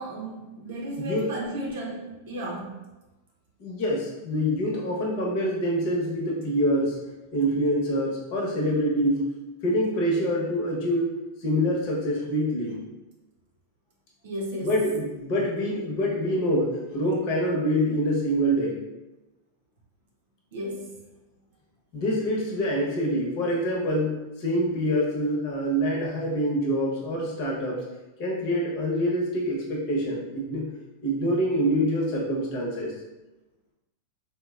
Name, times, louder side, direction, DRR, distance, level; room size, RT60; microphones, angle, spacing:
voice 1, 0.0-2.8 14.2-14.7 20.5-21.0, right 1 dB, 70° right, -3 dB, 0.7 m, -34 dB
voice 2, 3.6-7.0 7.3-9.2 9.6-11.1 11.4-12.8 14.6-18.8 21.9-27.8 28.2-30.7 31.0-32.9, equal, 50° left, -3 dB, 0.9 m, -25 dB
3.1 x 2.2 x 2.3 m, 1.0 s
hypercardioid pair, 120°, 0 cm